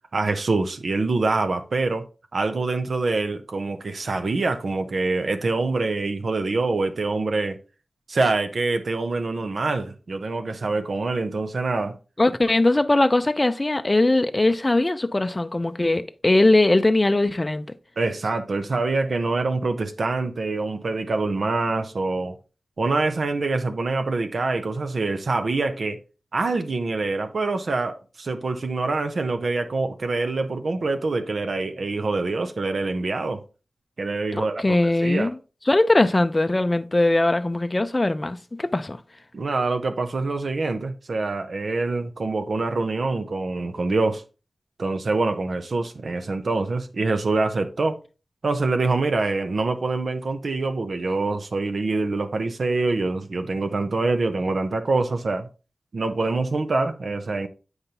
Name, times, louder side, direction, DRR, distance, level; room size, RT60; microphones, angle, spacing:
voice 1, 0.1-2.0 2.3-7.6 8.1-11.9 18.0-22.3 22.8-26.0 26.3-33.4 34.0-35.3 39.3-44.2 44.8-48.0 48.4-55.5 55.9-57.5, right 3 dB, 65° right, 0.7 m, -25 dB
voice 2, 12.2-17.7 34.3-35.4 35.7-39.0, left 2 dB, 25° left, 0.4 m, -20 dB
8.0 x 5.2 x 2.9 m
wide cardioid pair, 90°, 0 cm